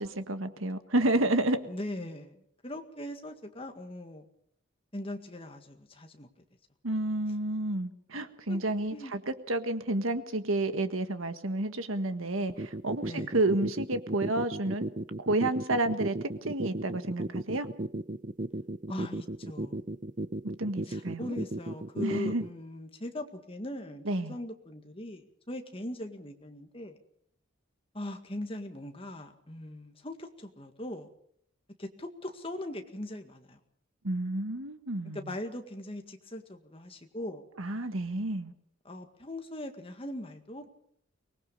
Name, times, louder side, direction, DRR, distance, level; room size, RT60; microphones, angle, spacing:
voice 1, 0.0-1.6 6.8-14.9 15.2-17.7 20.6-21.4 22.0-22.5 24.1-24.4 34.0-35.3 37.6-38.5, right 2 dB, 75° right, 9 dB, 1.6 m, -30 dB
voice 2, 1.7-4.3 4.9-6.3 8.5-8.6 8.9-9.1 13.0-13.3 18.9-19.8 20.9-27.0 27.9-31.1 31.8-33.6 35.1-37.4 38.9-40.7, left 1 dB, 25° left, 5 dB, 1.9 m, -40 dB
sound 1, 12.5-22.5, right 1 dB, 40° right, 0.8 m, -35 dB
24.5 x 19.5 x 5.5 m, 0.67 s
head